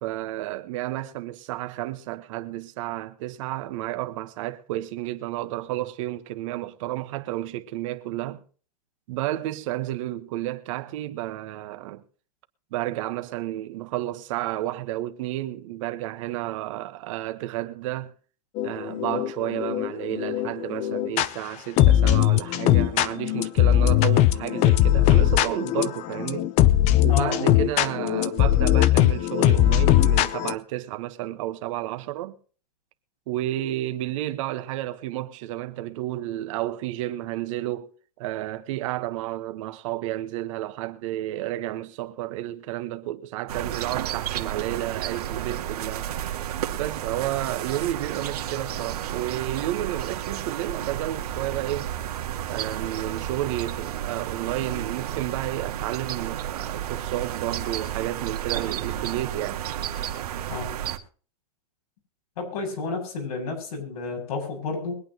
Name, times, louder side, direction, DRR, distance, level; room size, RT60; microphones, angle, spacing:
voice 1, 0.0-8.4 9.1-12.0 12.7-18.1 18.6-26.5 27.0-32.3 33.3-37.9 38.2-46.1 46.8-51.9 52.5-59.6, right 15 dB, 55° right, 1.4 m, -31 dB
sound 1, 18.6-21.3 21.8-30.5, left 13 dB, 35° left, 0.7 m, -20 dB
voice 2, 27.1-27.6 60.5-60.7 62.4-64.9, left 4 dB, 70° left, 7.2 m, -31 dB
sound 2, 43.5-61.0, right 11 dB, 80° right, 2.0 m, -32 dB
23.5 x 8.8 x 3.0 m
hypercardioid pair, 140°, 20 cm